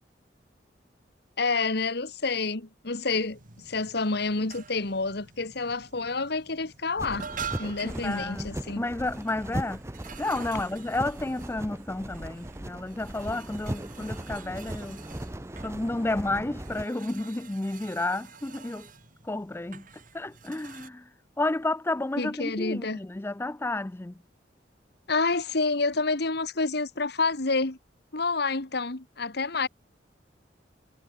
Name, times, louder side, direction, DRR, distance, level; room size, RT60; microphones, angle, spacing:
voice 1, 1.4-7.3 7.6-8.8 22.2-23.0 25.1-27.8 28.1-29.7, left 3 dB, 65° left, 1.7 m, -28 dB
sound 1, 3.1-20.9, right 6 dB, 45° right, 2.5 m, -47 dB
sound 2, 7.0-16.9, right 1 dB, 15° right, 0.8 m, -38 dB
voice 2, 7.8-9.8 10.2-15.0 15.6-18.9 19.2-19.9 20.1-21.1 21.4-24.2, left 2 dB, 15° left, 0.4 m, -31 dB
head